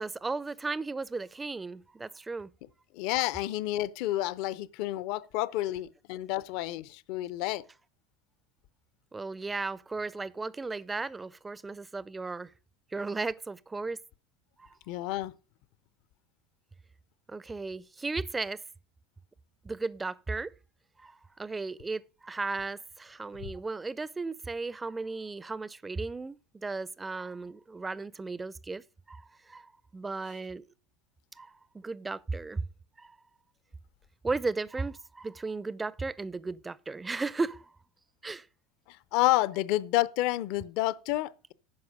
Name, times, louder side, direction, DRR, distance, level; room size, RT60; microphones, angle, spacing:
voice 1, 0.0-2.5 9.1-12.5 12.9-14.0 14.6-14.7 17.3-18.6 19.6-20.5 21.0-29.2 29.5-30.6 31.4-32.6 33.0-33.1 34.2-37.7 38.2-38.5, right 3 dB, 15° right, 0.4 m, -35 dB
voice 2, 2.9-7.6 14.9-15.3 23.4-23.5 38.9-41.5, left 16 dB, 60° left, 0.5 m, -30 dB
9.6 x 5.7 x 6.3 m
supercardioid pair, 135°, 0 cm